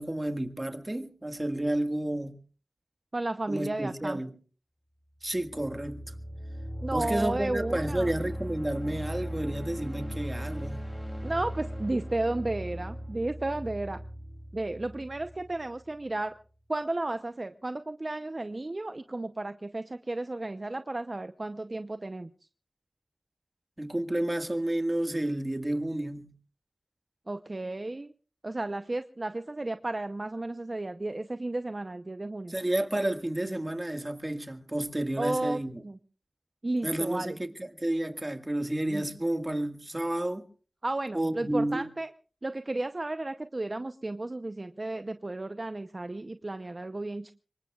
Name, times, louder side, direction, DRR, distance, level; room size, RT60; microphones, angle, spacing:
voice 1, 0.0-2.4 3.5-4.3 5.2-6.1 6.9-10.9 23.8-26.3 32.5-35.7 36.8-40.4 41.1-41.9, right 1 dB, 25° right, 1.8 m, -31 dB
voice 2, 3.1-4.2 6.8-8.2 11.2-14.0 14.5-16.4 16.7-22.3 27.3-28.1 28.4-32.5 35.2-36.0 36.6-37.4 38.9-39.1 40.8-42.1 42.4-47.3, right 2 dB, 45° right, 0.7 m, -33 dB
sound 1, 5.3-16.0, equal, 10° left, 2.9 m, -38 dB
26.0 x 23.0 x 2.4 m
wide cardioid pair, 50°, 0 cm